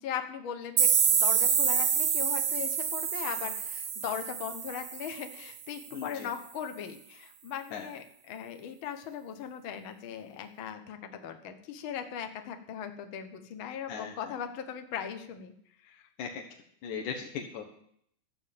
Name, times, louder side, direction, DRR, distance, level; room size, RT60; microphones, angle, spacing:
voice 1, 0.0-15.5 15.8-16.0, left 8 dB, 90° left, 7 dB, 1.1 m, -39 dB
sound 1, 0.8-5.4, right 7 dB, 60° right, 1.4 m, -27 dB
voice 2, 5.9-6.3 7.7-7.9 13.9-14.1 16.2-16.4 16.8-17.6, left 6 dB, 65° left, 2 dB, 2.4 m, -38 dB
13.0 x 7.3 x 8.8 m, 0.67 s
omnidirectional pair, 4.4 m